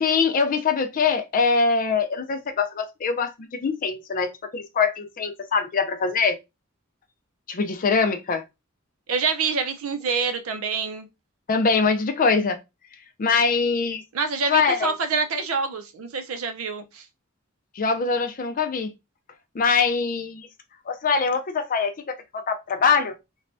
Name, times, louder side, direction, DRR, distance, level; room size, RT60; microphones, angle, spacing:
voice 1, 0.0-6.4 7.5-8.4 11.5-12.6 13.2-14.0 14.5-14.9 17.8-18.9 19.5-20.5 20.9-23.2, left 5 dB, 40° left, 0.5 m, -23 dB
voice 2, 9.1-11.1 14.1-17.1, right 5 dB, 90° right, 0.6 m, -26 dB
3.2 x 2.2 x 2.5 m
head